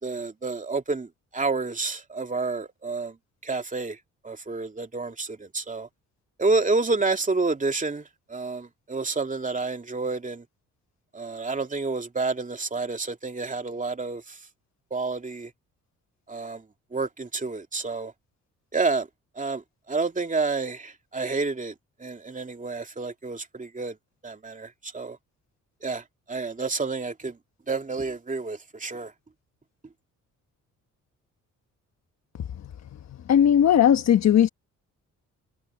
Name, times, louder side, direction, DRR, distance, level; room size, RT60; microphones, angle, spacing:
voice 1, 0.0-3.2 3.4-4.0 4.2-5.9 6.4-10.4 11.1-14.4 14.9-15.5 16.3-16.6 16.9-18.1 18.7-19.1 19.4-19.6 19.9-21.7 22.0-24.0 24.2-25.2 25.8-27.4 27.7-29.1, right 3 dB, 25° right, 2.7 m, -29 dB
voice 2, 33.3-34.5, left 9 dB, 55° left, 1.2 m, -17 dB
supercardioid pair, 70°, 32 cm